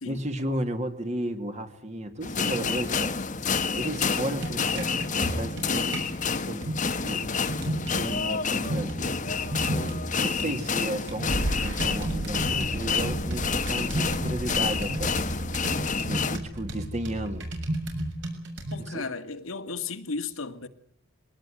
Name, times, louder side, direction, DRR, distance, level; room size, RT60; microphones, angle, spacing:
voice 1, 0.1-3.1 3.7-6.0 6.2-6.7 7.0-7.3 7.9-9.2 9.7-15.3 16.1-17.5 18.8-19.0, right 1 dB, 35° right, 2.5 m, -34 dB
sound 1, 2.2-16.4, left 5 dB, 35° left, 1.2 m, -29 dB
sound 2, 4.4-6.1 6.6-8.2 8.6-10.1 10.4-18.9, right 1 dB, 60° right, 6.8 m, -34 dB
sound 3, 9.4-10.5 11.2-18.1, right 1 dB, 75° right, 1.6 m, -35 dB
voice 2, 18.7-20.7, left 4 dB, 80° left, 2.0 m, -34 dB
22.5 x 19.0 x 9.3 m
head